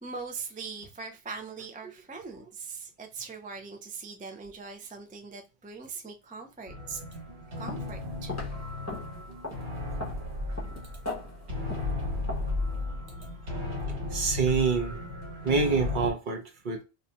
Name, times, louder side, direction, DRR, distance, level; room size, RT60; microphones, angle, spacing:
voice 1, 0.0-7.0 7.6-8.5 11.5-11.6, right 4 dB, 15° right, 0.3 m, -41 dB
sound 1, 6.7-16.1, left 2 dB, 70° right, 1.5 m, -34 dB
sound 2, 7.7-8.0 8.3-12.6, left 2 dB, 20° left, 0.7 m, -40 dB
voice 2, 14.1-15.0 15.4-16.8, right 5 dB, 55° right, 0.8 m, -26 dB
2.7 x 2.3 x 4.0 m
omnidirectional pair, 1.1 m